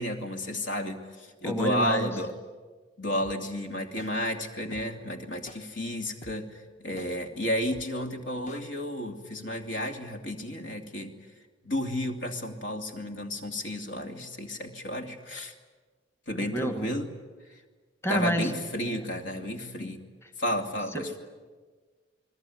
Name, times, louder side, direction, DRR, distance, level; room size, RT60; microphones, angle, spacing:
voice 1, 0.0-2.3 3.0-6.5 6.8-11.1 11.6-15.5 16.3-17.1 18.1-20.0 20.4-21.2, left 1 dB, 65° left, 4 dB, 2.8 m, -32 dB
voice 2, 1.4-2.1 16.5-16.9 18.0-18.5 18.9-19.0 20.9-21.2, equal, 15° left, 6 dB, 1.8 m, -29 dB
sound 1, 3.2-3.3 4.0-4.1 4.7-4.8 5.5-5.6 6.2-6.3 7.0-7.1 7.7-7.8 8.5-8.6, left 1 dB, 35° left, 1.5 m, -46 dB
29.0 x 20.5 x 9.5 m, 1.4 s
head